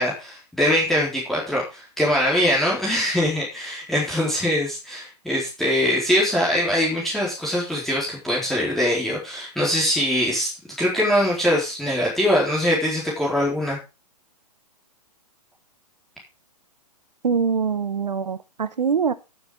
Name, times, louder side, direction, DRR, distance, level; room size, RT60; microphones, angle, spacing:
voice 1, 0.0-10.5 10.8-13.8, equal, ahead, -6 dB, 4.2 m, -22 dB
voice 2, 17.2-19.1, right 6 dB, 85° right, 14 dB, 1.3 m, -23 dB
14.0 x 7.1 x 5.0 m, 0.29 s
hypercardioid pair, 130°, 21 cm